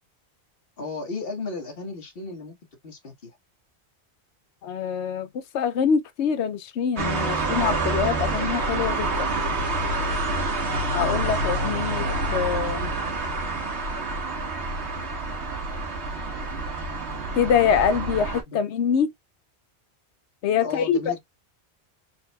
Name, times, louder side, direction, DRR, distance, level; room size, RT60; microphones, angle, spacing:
voice 1, 0.8-2.6 2.8-3.4 18.5-18.6 20.6-21.2, left 3 dB, 60° left, 1.7 m, -34 dB
voice 2, 4.6-5.3 5.5-9.3 10.9-12.9 17.3-19.1 20.4-21.0, left 7 dB, 85° left, 1.0 m, -24 dB
sound 1, 7.0-18.4, right 2 dB, 80° right, 1.9 m, -27 dB
4.4 x 4.1 x 2.2 m
omnidirectional pair, 1.1 m